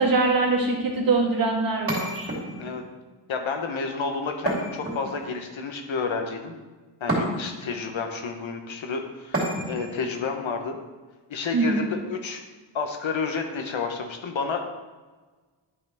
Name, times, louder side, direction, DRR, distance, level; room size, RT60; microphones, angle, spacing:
voice 1, 0.0-2.3 11.5-11.9, right 3 dB, 45° right, 0 dB, 1.5 m, -23 dB
sound 1, 1.9-2.8 4.5-5.4 7.1-7.7 9.3-10.0, right 1 dB, 25° right, 2.8 m, -29 dB
voice 2, 3.3-6.6 7.0-10.8 11.3-12.4 12.7-14.6, left 4 dB, 75° left, 4 dB, 1.1 m, -30 dB
11.0 x 5.7 x 3.5 m, 1.3 s
wide cardioid pair, 180°, 48 cm